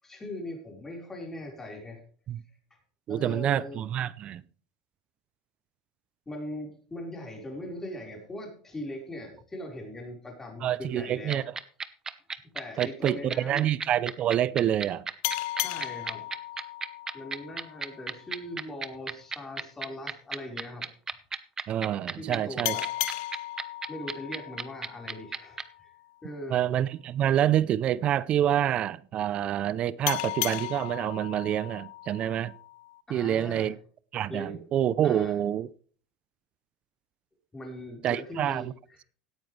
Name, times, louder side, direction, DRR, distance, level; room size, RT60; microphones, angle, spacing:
voice 1, 0.0-2.0 3.1-3.8 6.3-11.5 12.5-13.7 15.6-16.3 17.1-20.9 22.2-22.9 23.9-26.0 26.2-26.6 33.1-33.7 34.3-34.7 35.0-35.4 37.5-39.0, left 1 dB, 15° left, 4.5 m, -40 dB
voice 2, 3.1-4.4 10.6-11.4 12.8-15.1 21.7-22.8 26.5-32.5 33.1-33.7 34.1-35.7 38.0-38.7, right 11 dB, 40° right, 0.5 m, -27 dB
sound 1, 11.3-25.6, right 5 dB, 20° right, 0.9 m, -33 dB
sound 2, 15.2-18.5 22.6-25.9 30.1-33.0, left 19 dB, 70° left, 0.5 m, -36 dB
17.0 x 9.1 x 3.3 m
supercardioid pair, 120°, 3 cm